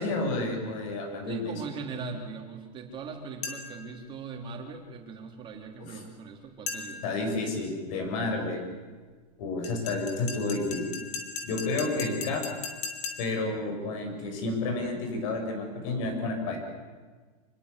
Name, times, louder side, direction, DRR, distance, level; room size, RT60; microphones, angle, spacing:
voice 1, 0.0-1.7 5.8-6.0 7.0-8.7 9.4-10.9 11.4-12.4 13.2-16.6, left 2 dB, 55° left, 4 dB, 7.5 m, -30 dB
voice 2, 1.3-7.0, right 5 dB, 25° right, 3 dB, 3.8 m, -40 dB
sound 1, 3.4-3.9 6.7-7.2 9.6-13.5, left 5 dB, 35° left, 3.1 m, -38 dB
26.5 x 20.0 x 8.5 m, 1.4 s
supercardioid pair, 155°, 21 cm